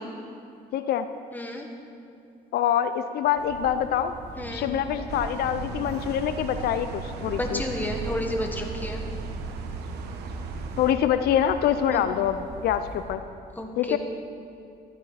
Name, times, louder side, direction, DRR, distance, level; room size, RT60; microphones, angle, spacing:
voice 1, 0.7-1.1 2.5-4.2 4.5-7.6 10.8-13.2 13.8-14.0, left 10 dB, 70° left, 10 dB, 0.5 m, -25 dB
voice 2, 1.3-1.7 4.4-4.7 7.3-9.0 11.9-12.1 13.6-14.0, left 1 dB, 10° left, 2 dB, 1.6 m, -31 dB
sound 1, 3.3-13.1, right 2 dB, 50° right, 3.2 m, -42 dB
sound 2, 5.1-10.9, right 5 dB, 80° right, 1.0 m, -36 dB
14.5 x 12.5 x 4.1 m, 2.5 s
cardioid pair, 110°, 17 cm